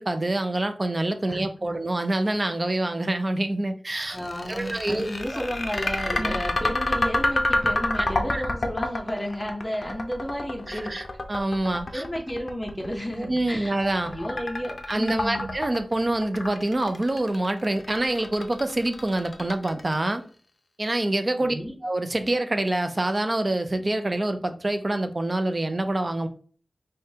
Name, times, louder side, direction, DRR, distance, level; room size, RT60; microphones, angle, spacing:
voice 1, 0.0-4.2 4.5-5.4 6.2-6.4 8.0-8.1 8.3-8.4 10.7-12.0 13.2-14.2 14.9-20.2 20.8-21.5 21.8-26.3, right 1 dB, 30° right, 7 dB, 0.4 m, -26 dB
voice 2, 1.3-1.8 4.1-10.9 11.9-13.8 14.0-15.5 21.4-21.7, equal, 10° left, 0 dB, 0.8 m, -32 dB
sound 1, 4.0-20.1, left 2 dB, 50° left, 0.5 m, -28 dB
5.0 x 2.2 x 2.7 m, 0.43 s
wide cardioid pair, 85°, 0 cm